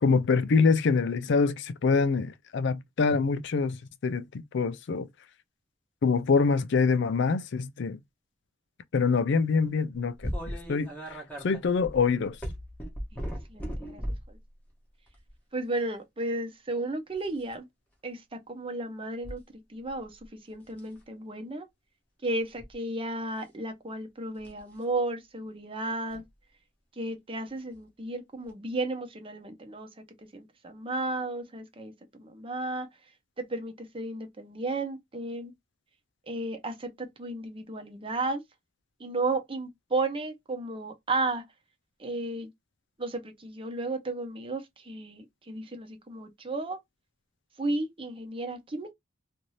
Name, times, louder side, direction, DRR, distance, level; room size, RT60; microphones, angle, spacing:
voice 1, 0.0-5.1 6.0-8.0 8.9-11.2 11.4-12.4, left 4 dB, 60° left, 0.4 m, -25 dB
sound 1, 10.2-14.3 15.1-15.3 17.1-17.5 19.2-19.4 19.9-20.3 20.7-21.0 22.4-22.7 24.4-24.6 26.1-26.2 27.7-27.8 28.5-28.6, equal, 10° left, 1.0 m, -37 dB
voice 2, 13.5-14.0 14.3-14.4 15.5-17.7 18.0-19.4 19.7-20.2 20.5-21.7 22.2-26.2 27.0-29.9 30.3-32.9 33.4-35.5 36.3-38.4 39.0-41.4 42.0-42.5 43.0-46.8 47.6-48.9, right 2 dB, 25° right, 0.7 m, -33 dB
2.7 x 2.6 x 3.1 m
head